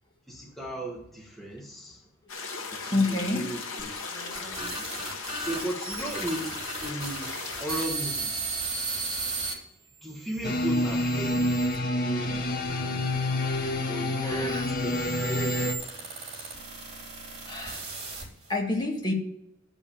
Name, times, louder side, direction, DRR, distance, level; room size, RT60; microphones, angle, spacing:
voice 1, 0.3-2.0 2.7-3.9 4.3-5.0 5.4-7.3 7.6-8.5 10.0-11.5 11.8-12.6 13.9-15.8, right 1 dB, ahead, -2 dB, 1.2 m, -36 dB
sound 1, 2.3-7.9, left 4 dB, 80° left, 1.7 m, -37 dB
voice 2, 2.9-3.5 14.2-14.7 17.5-17.8 18.5-19.1, left 2 dB, 20° left, 1 dB, 1.7 m, -28 dB
sound 2, 3.8-9.5 10.2-11.8 12.6-18.5, right 3 dB, 30° right, 3.2 m, -37 dB
sound 3, 10.4-15.7, left 1 dB, 50° left, 1.2 m, -28 dB
10.0 x 5.4 x 7.0 m, 0.82 s
head